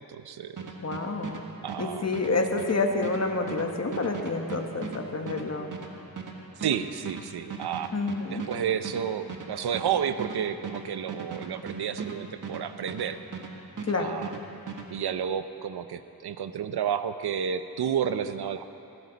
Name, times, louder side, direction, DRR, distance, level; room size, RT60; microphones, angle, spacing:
voice 1, 0.1-0.7 1.6-2.1 6.6-7.9 8.3-13.2 14.0-14.3 14.9-18.6, right 8 dB, 85° right, 10 dB, 0.7 m, -31 dB
sound 1, 0.6-13.5 13.8-14.9, right 5 dB, 55° right, 1.7 m, -38 dB
voice 2, 0.8-1.4 1.8-5.7 7.9-8.4 13.8-14.2, left 3 dB, 40° left, 3 dB, 1.5 m, -28 dB
19.5 x 16.5 x 4.1 m, 2.8 s
wide cardioid pair, 95°, 38 cm